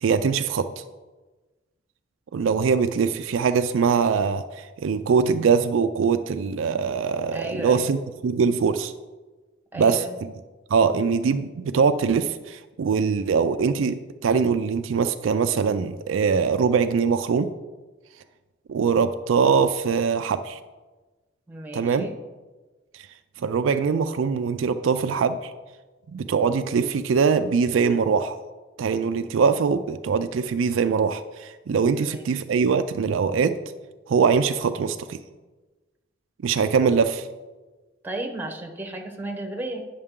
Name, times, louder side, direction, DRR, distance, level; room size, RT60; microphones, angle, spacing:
voice 1, 0.0-0.8 2.3-8.0 8.2-8.9 9.8-10.0 10.7-17.5 18.7-20.6 21.7-22.1 23.4-25.5 26.1-28.4 28.8-33.6 34.1-35.2 36.4-37.3, right 5 dB, 70° right, 9 dB, 0.4 m, -22 dB
voice 2, 7.3-7.9 9.7-10.2 21.5-22.2 32.0-32.3 38.0-39.9, right 1 dB, 10° right, 3 dB, 0.9 m, -33 dB
9.7 x 6.5 x 3.7 m, 1.2 s
head